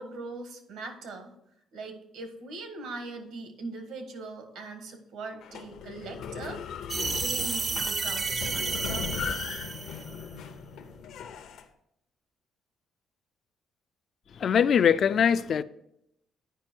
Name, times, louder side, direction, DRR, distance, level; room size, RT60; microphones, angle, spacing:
voice 1, 0.0-1.3 1.7-6.6 7.1-9.5, right 3 dB, 75° right, 1.5 m, -41 dB
sound 1, 5.4-11.6, left 7 dB, 75° left, 0.8 m, -38 dB
sound 2, 6.9-10.2, right 4 dB, 25° right, 0.4 m, -31 dB
voice 2, 14.3-15.6, left 7 dB, 45° left, 0.3 m, -22 dB
9.0 x 5.1 x 4.5 m
cardioid pair, 145°, 0 cm